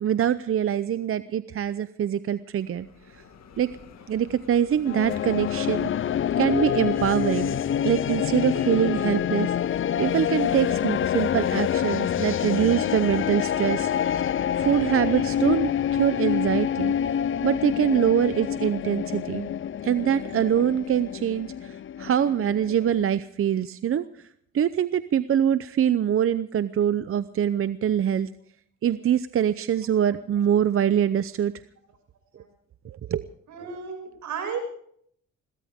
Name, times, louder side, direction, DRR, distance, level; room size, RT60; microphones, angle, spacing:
voice 1, 0.0-2.9 3.6-3.7 4.1-5.9 6.4-7.6 7.8-14.2 14.6-16.9 17.4-19.5 19.8-24.0 24.5-28.3 28.8-31.5 33.1-33.2, right 9 dB, 45° right, 13 dB, 0.7 m, -24 dB
Bell, 2.4-14.2, left 6 dB, 60° left, 2.1 m, -50 dB
sound 1, 4.8-23.1, left 9 dB, 45° left, 0.5 m, -27 dB
voice 2, 33.5-34.6, right 6 dB, 75° right, 5 dB, 6.5 m, -34 dB
21.5 x 18.0 x 3.7 m, 0.65 s
cardioid pair, 90°, 30 cm